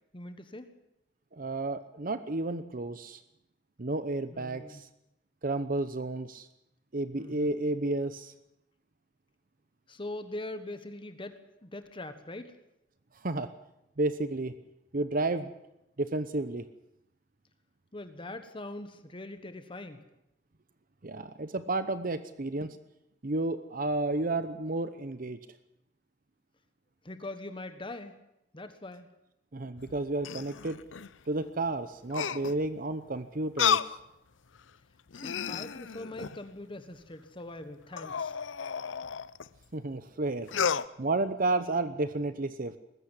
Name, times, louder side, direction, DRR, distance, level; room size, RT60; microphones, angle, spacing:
voice 1, 0.1-0.7 4.3-4.8 7.1-7.6 9.9-12.6 17.9-20.0 27.0-28.1 28.5-29.1 35.1-38.3, left 2 dB, 25° left, 9 dB, 1.3 m, -42 dB
voice 2, 1.3-3.2 3.8-4.9 5.4-6.5 6.9-8.3 13.2-13.5 14.0-14.5 14.9-15.5 16.0-16.7 21.0-22.8 23.2-25.4 29.5-30.8 31.3-34.0 39.7-40.5 41.0-42.8, right 2 dB, 45° right, 12 dB, 0.9 m, -31 dB
sound 1, 29.8-31.1 32.1-32.7 33.6-34.0 34.6-34.7 35.1-36.5 37.9-39.5 40.5-40.9, left 7 dB, 80° left, 0.7 m, -32 dB
20.5 x 14.5 x 9.8 m, 0.86 s
head